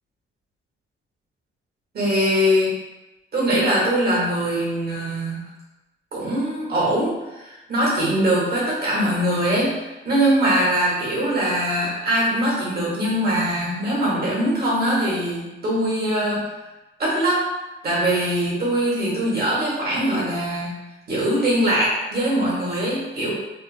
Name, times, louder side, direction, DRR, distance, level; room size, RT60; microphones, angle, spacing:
voice 1, 1.9-2.7 3.3-5.4 6.1-9.8 10.0-16.5 17.0-17.5 17.8-20.7 21.1-23.3, right 1 dB, 50° right, -5 dB, 1.4 m, -22 dB
3.5 x 2.3 x 2.5 m, 1.0 s
cardioid pair, 115°, 21 cm